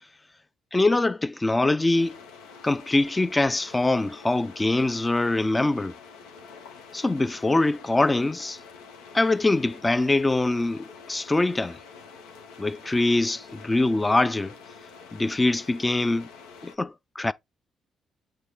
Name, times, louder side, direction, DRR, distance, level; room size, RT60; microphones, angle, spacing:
voice 1, 0.7-2.2 2.6-5.9 6.9-8.6 9.1-11.8 12.6-14.5 15.1-16.3 16.6-17.3, left 2 dB, 20° left, 0.6 m, -23 dB
sound 1, 1.9-16.8, left 5 dB, 85° left, 1.4 m, -47 dB
8.0 x 3.7 x 3.4 m
supercardioid pair, 60°, 0 cm